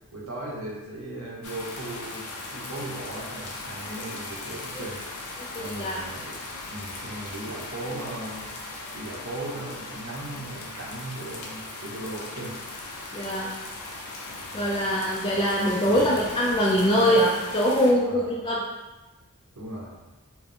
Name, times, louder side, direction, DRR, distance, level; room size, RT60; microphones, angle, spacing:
voice 1, 0.1-5.0 5.6-6.4 6.7-8.5 8.9-12.5 14.5-14.8 15.8-16.1 16.8-17.2 17.9-18.3 19.5-19.9, right 1 dB, 70° right, -5 dB, 1.1 m, -37 dB
sound 1, 1.4-17.9, left 2 dB, 75° left, 0.6 m, -38 dB
voice 2, 5.5-6.0 13.1-13.5 14.5-18.6, equal, 20° left, -6 dB, 0.4 m, -23 dB
4.5 x 2.1 x 3.6 m, 1.1 s
head